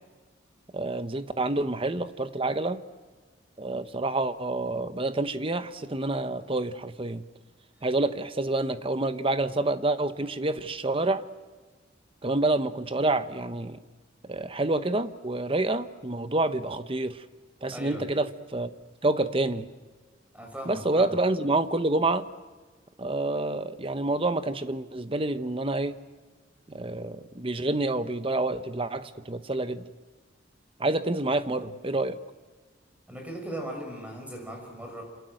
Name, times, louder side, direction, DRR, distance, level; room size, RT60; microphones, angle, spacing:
voice 1, 0.7-2.8 3.6-7.2 7.8-11.2 12.2-13.8 14.3-17.2 17.6-18.7 19.0-19.7 20.7-22.3 23.0-26.0 26.7-29.8 30.8-32.2, right 2 dB, 30° right, 11 dB, 1.1 m, -28 dB
voice 2, 17.7-18.1 20.3-21.1 33.1-35.0, right 1 dB, 5° right, 2 dB, 6.1 m, -38 dB
27.5 x 27.5 x 7.8 m, 1.4 s
head